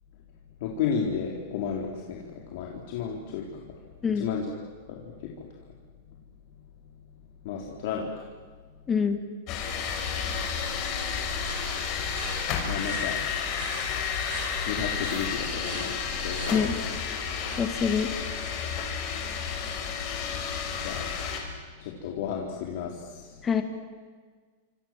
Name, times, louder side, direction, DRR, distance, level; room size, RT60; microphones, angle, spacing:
voice 1, 0.6-2.2 2.5-3.6 4.1-4.5 4.9-5.5 7.4-8.2 12.7-13.2 14.7-16.7 20.8-21.1 21.8-23.4, left 6 dB, 55° left, 0 dB, 3.9 m, -33 dB
voice 2, 8.9-9.2 16.5-16.8 17.6-18.1 23.4-23.6, left 6 dB, 15° left, 6 dB, 2.0 m, -25 dB
sound 1, 9.5-21.4, left 6 dB, 35° left, 5.6 m, -31 dB
sound 2, 11.4-16.7, right 5 dB, 65° right, 8.0 m, -43 dB
28.5 x 27.0 x 7.6 m, 1.5 s
supercardioid pair, 165°, 0 cm